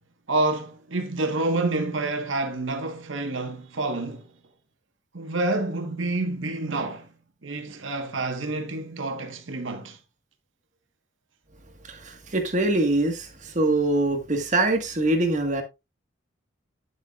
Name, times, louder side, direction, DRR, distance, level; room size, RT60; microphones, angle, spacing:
voice 1, 0.3-4.3 5.1-7.1 7.4-10.0, right 2 dB, 85° right, 1.3 m, -28 dB
voice 2, 11.9-15.6, right 2 dB, 40° right, 1.5 m, -24 dB
10.0 x 7.9 x 2.4 m
head